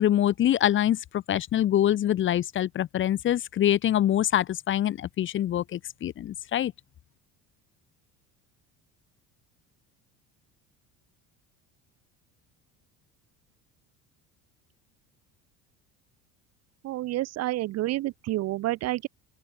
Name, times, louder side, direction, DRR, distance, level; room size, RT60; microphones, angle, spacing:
voice 1, 0.0-6.7, left 11 dB, 35° left, 0.8 m, -25 dB
voice 2, 16.8-19.1, right 16 dB, 50° right, 0.7 m, -29 dB
open air
cardioid pair, 145°, 34 cm